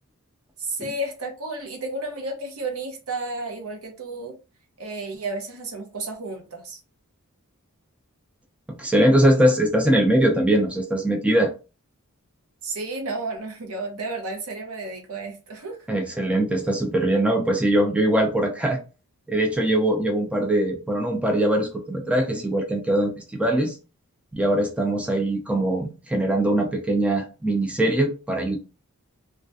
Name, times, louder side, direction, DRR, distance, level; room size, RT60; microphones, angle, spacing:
voice 1, 0.6-4.3 4.8-6.8 12.6-15.8, right 2 dB, 70° right, 3 dB, 0.7 m, -32 dB
voice 2, 8.7-11.5 15.9-18.8 19.3-23.8 24.3-28.6, right 1 dB, 5° right, 2 dB, 0.3 m, -22 dB
2.3 x 2.1 x 2.5 m, 0.32 s
head